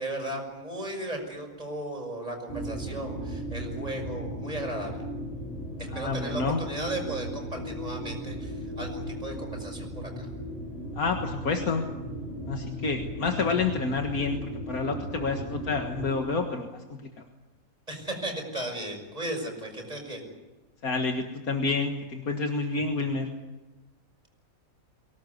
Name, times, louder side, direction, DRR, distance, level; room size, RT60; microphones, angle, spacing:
voice 1, 0.0-5.0 5.8-10.3 17.9-20.2, right 1 dB, 25° right, 2 dB, 6.3 m, -36 dB
sound 1, 2.5-16.2, equal, 25° left, 8.1 m, -36 dB
voice 2, 5.9-6.6 11.0-11.8 12.5-14.4 14.7-17.0 20.8-23.3, left 4 dB, 75° left, 3 dB, 2.1 m, -29 dB
23.5 x 18.5 x 9.5 m, 1.1 s
omnidirectional pair, 1.5 m